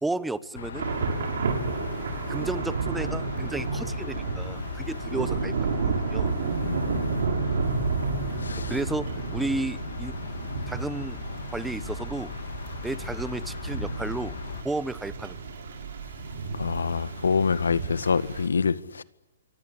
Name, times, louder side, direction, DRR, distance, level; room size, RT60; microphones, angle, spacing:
voice 1, 0.0-0.9 2.3-6.3 8.7-10.1 10.7-11.2 11.5-12.3 12.8-14.4 14.6-15.4, right 2 dB, 5° right, 1.1 m, -33 dB
sound 1, 0.6-14.6, left 7 dB, 70° left, 2.8 m, -38 dB
Thunder / Rain, 0.7-18.5, right 4 dB, 70° right, 7.6 m, -31 dB
voice 2, 6.6-7.2 8.4-8.7 16.5-19.0, left 5 dB, 90° left, 1.8 m, -26 dB
28.0 x 24.5 x 8.6 m
hypercardioid pair, 140°, 0 cm